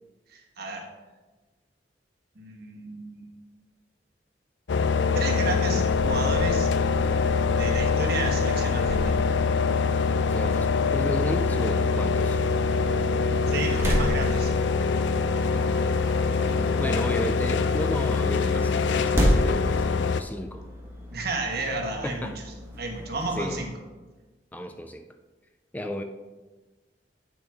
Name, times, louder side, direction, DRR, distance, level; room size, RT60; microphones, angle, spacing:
voice 1, 0.3-0.9 2.3-3.3 4.8-6.7 7.6-9.2 13.5-14.5 21.1-22.4 22.8-23.7, right 2 dB, 60° right, 1 dB, 1.3 m, -32 dB
sound 1, 4.7-20.2, left 5 dB, 80° left, 0.4 m, -24 dB
sound 2, 5.0-23.7, equal, 15° right, 1.3 m, -34 dB
voice 2, 10.3-12.4 15.5-15.9 16.8-20.7 22.0-22.4 23.4-23.6 24.5-25.0 25.7-26.0, equal, 10° left, 6 dB, 0.3 m, -33 dB
8.6 x 6.3 x 3.5 m, 1.3 s
head